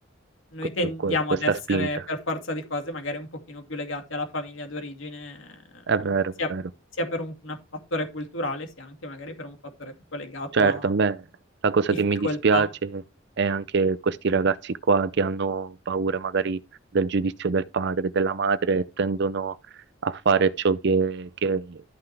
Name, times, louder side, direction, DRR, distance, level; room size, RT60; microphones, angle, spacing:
voice 1, 0.5-5.8 6.4-6.5 6.9-7.6 7.9-10.9 12.2-12.7, left 2 dB, 80° left, 2.5 m, -31 dB
voice 2, 1.5-2.0 5.9-6.6 10.5-11.2 11.6-12.7 13.4-16.6 16.9-19.6 20.0-21.8, right 4 dB, 60° right, 0.6 m, -24 dB
13.0 x 5.8 x 3.4 m
head